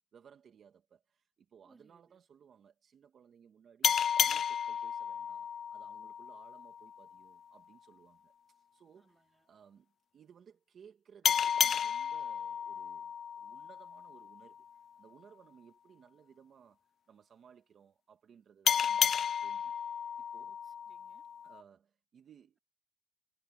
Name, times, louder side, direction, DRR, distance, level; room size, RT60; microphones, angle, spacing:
voice 1, 0.0-14.7 15.0-19.8 20.3-20.6 21.4-22.6, right 7 dB, 45° right, 2.1 m, -61 dB
voice 2, 1.6-2.2 8.9-9.5 20.6-21.2, right 3 dB, 15° right, 3.6 m, -68 dB
sound 1, 3.8-7.1 11.2-14.5 18.7-21.6, left 8 dB, 45° left, 0.4 m, -32 dB
cardioid pair, 125°, 0 cm